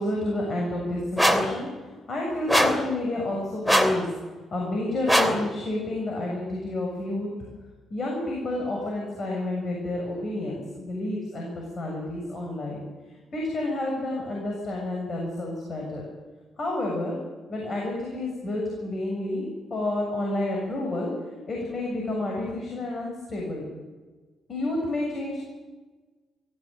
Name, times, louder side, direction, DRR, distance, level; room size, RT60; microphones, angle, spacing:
voice 1, 0.0-7.5 7.9-12.8 13.3-16.0 16.6-21.1 21.5-23.7 24.5-25.4, left 1 dB, 40° left, -1 dB, 7.2 m, -30 dB
sound 1, 1.2-1.5 2.5-2.9 3.7-4.0 5.1-5.4, equal, 5° left, 2.8 m, -21 dB
22.5 x 16.0 x 9.1 m, 1.3 s
cardioid pair, 90°, 0 cm